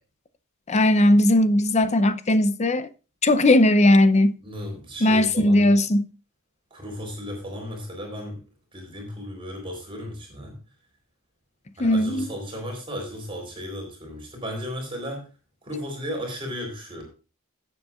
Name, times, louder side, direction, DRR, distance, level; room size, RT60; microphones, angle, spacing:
voice 1, 0.7-2.9 3.2-4.4 5.0-6.1 11.8-12.3, left 1 dB, 30° left, 0.6 m, -18 dB
voice 2, 4.4-5.7 6.7-8.4 8.7-10.6 11.8-15.3 15.6-17.0, equal, 25° right, 3.9 m, -35 dB
16.5 x 7.7 x 2.4 m
head